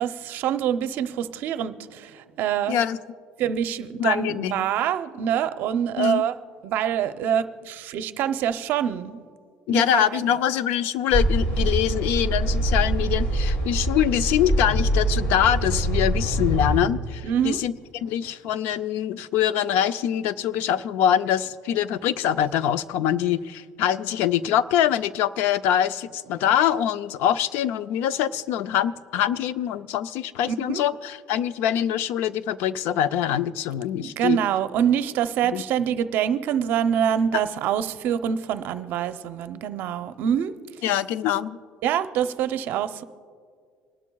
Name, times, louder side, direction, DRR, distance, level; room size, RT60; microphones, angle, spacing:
voice 1, 0.0-2.8 3.4-6.3 6.6-9.2 9.7-10.3 17.2-17.6 30.5-30.8 34.0-40.5 41.8-43.0, right 9 dB, 65° right, 11 dB, 0.6 m, -25 dB
voice 2, 2.7-3.0 4.0-4.7 6.0-6.2 9.7-17.7 18.0-34.4 35.5-35.6 37.3-37.4 40.8-41.6, left 10 dB, 75° left, 14 dB, 0.4 m, -24 dB
sound 1, 11.1-16.8, right 1 dB, 45° left, 3.8 m, -24 dB
26.0 x 12.0 x 2.3 m, 2.1 s
cardioid pair, 125°, 4 cm